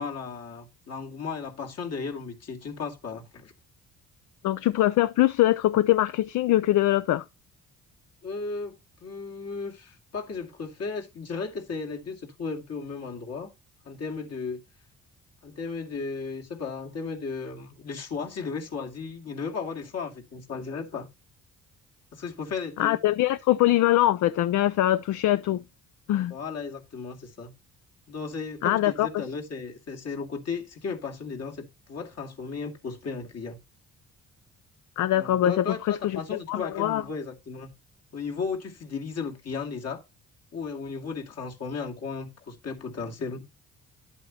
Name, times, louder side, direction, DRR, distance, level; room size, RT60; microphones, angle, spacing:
voice 1, 0.0-3.5 8.2-8.8 9.0-13.5 13.9-14.6 15.4-21.1 22.1-23.0 26.3-27.5 28.1-33.6 35.1-37.7 38.1-40.0 40.5-43.5, left 5 dB, 55° left, 2.4 m, -35 dB
voice 2, 4.4-7.2 22.8-25.6 26.1-26.3 28.6-29.1 35.0-37.0, left 14 dB, 70° left, 0.5 m, -23 dB
11.0 x 8.2 x 2.9 m
cardioid pair, 90°, 30 cm